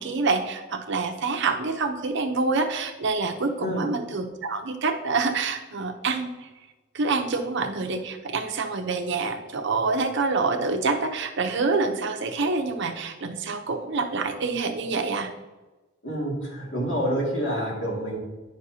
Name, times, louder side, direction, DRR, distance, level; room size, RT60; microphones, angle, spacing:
voice 1, 0.0-6.5 6.9-15.3, right 4 dB, 65° right, 6 dB, 0.8 m, -26 dB
voice 2, 16.0-18.2, equal, 65° left, -3 dB, 2.2 m, -27 dB
9.6 x 6.4 x 2.8 m, 1.2 s
head